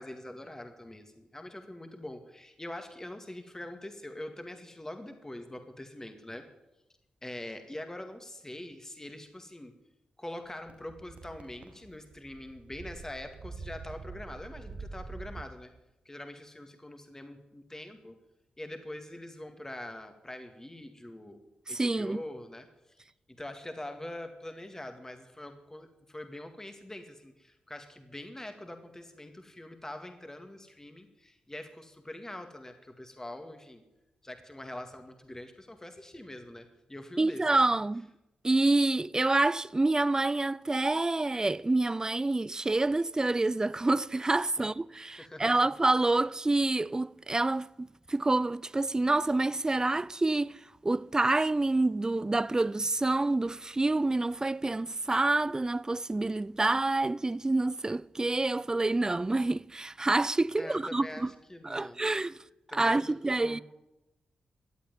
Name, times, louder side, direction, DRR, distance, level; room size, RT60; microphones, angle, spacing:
voice 1, 0.0-6.5 7.2-9.7 10.2-15.7 16.1-18.2 18.6-33.8 34.2-37.5 44.6-44.7 45.2-45.7 60.6-62.0 62.7-63.2 63.4-63.6, left 1 dB, 20° left, 2.1 m, -44 dB
sound 1, 10.7-15.4, right 4 dB, 55° right, 1.3 m, -45 dB
voice 2, 21.7-22.2 37.2-38.1 38.4-50.6 50.8-61.3 61.6-62.4 62.7-63.6, right 2 dB, 25° right, 0.5 m, -27 dB
14.5 x 8.7 x 9.7 m
supercardioid pair, 50°, 3 cm